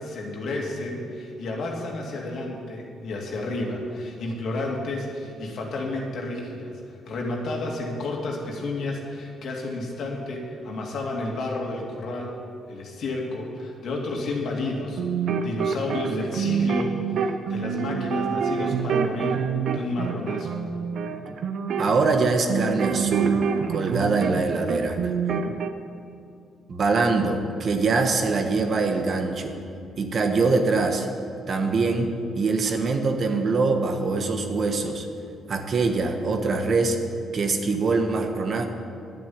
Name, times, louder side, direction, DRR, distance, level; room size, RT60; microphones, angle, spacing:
voice 1, 0.0-12.4 12.7-15.0 15.4-19.4 19.7-20.5, left 2 dB, 65° left, -1 dB, 2.4 m, -31 dB
sound 1, 14.9-24.4 24.7-25.7, right 6 dB, 65° right, 0.8 m, -26 dB
voice 2, 21.8-23.4 23.7-25.1 26.7-29.6 30.0-31.1 31.5-32.1 32.4-35.0 35.5-37.0 37.3-38.7, right 3 dB, 50° right, 5 dB, 1.3 m, -23 dB
10.5 x 7.0 x 9.5 m, 2.4 s
cardioid pair, 90°, 0 cm